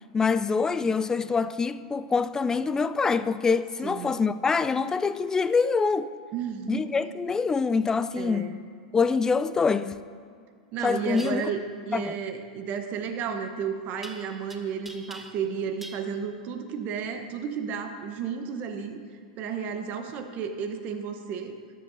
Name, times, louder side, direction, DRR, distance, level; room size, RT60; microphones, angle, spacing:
voice 1, 0.1-6.1 6.7-8.5 8.9-10.0 10.8-11.5 11.9-12.2, left 5 dB, 15° left, 0.3 m, -25 dB
voice 2, 6.3-6.9 8.2-8.6 10.7-19.0 19.4-21.6, right 7 dB, 45° right, 0.9 m, -32 dB
sound 1, 11.1-11.3 14.0-14.5 14.8-15.5 15.8-16.0, right 1 dB, 5° right, 0.8 m, -43 dB
13.0 x 9.7 x 2.7 m
hypercardioid pair, 110°, 4 cm